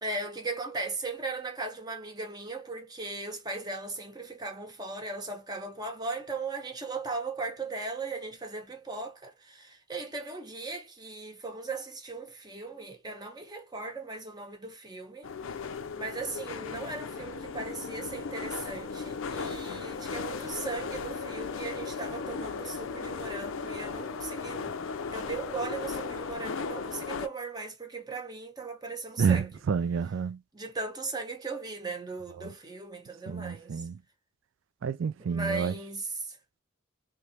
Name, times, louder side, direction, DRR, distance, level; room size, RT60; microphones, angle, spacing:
voice 1, 0.0-15.3 15.9-24.7 25.1-29.5 30.5-33.9 35.2-36.4, right 3 dB, 20° right, 0.9 m, -38 dB
sound 1, 15.2-27.3, left 5 dB, 80° left, 0.5 m, -36 dB
voice 2, 29.2-30.4 32.4-32.5 33.3-34.0 34.8-35.7, right 6 dB, 70° right, 0.3 m, -29 dB
3.2 x 2.9 x 2.7 m
head